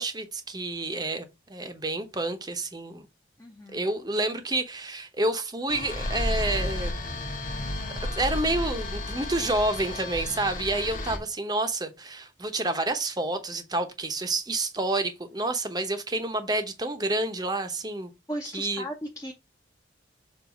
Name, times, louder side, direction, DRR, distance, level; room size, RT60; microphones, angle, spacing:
voice 1, 0.0-3.1 3.7-6.9 8.1-18.1 18.5-18.9, right 2 dB, 20° right, 0.9 m, -29 dB
voice 2, 3.4-4.0 18.3-19.3, equal, 15° left, 0.8 m, -36 dB
sound 1, 5.7-11.2, left 1 dB, 45° left, 1.6 m, -32 dB
7.1 x 2.6 x 5.1 m
head